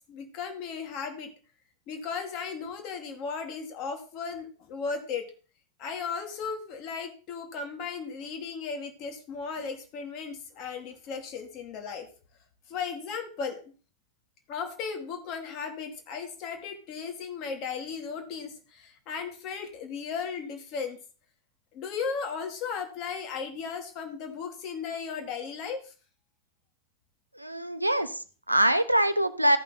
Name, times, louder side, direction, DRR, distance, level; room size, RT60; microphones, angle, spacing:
voice 1, 0.1-1.3 1.9-5.3 5.8-12.1 12.7-13.6 14.5-21.0 21.7-25.9, left 5 dB, 40° left, 5 dB, 2.0 m, -36 dB
voice 2, 27.3-29.6, right 1 dB, 85° right, 11 dB, 0.7 m, -24 dB
14.0 x 5.4 x 4.0 m, 0.38 s
figure-of-eight pair, 90°, 0 cm